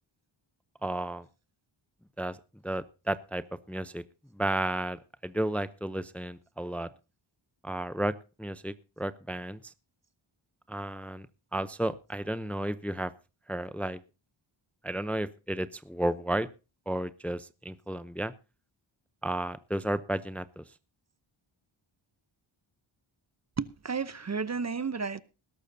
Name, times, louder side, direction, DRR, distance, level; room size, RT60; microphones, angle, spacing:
voice 1, 0.8-1.3 2.2-2.4 2.6-4.0 4.3-6.9 7.6-9.7 10.7-11.3 11.5-13.1 13.5-14.0 14.8-16.5 16.9-18.3 19.2-20.6, right 1 dB, 5° left, 0.6 m, -33 dB
voice 2, 23.6-25.2, right 5 dB, 35° right, 0.8 m, -32 dB
20.0 x 12.0 x 2.7 m
wide cardioid pair, 85°, 49 cm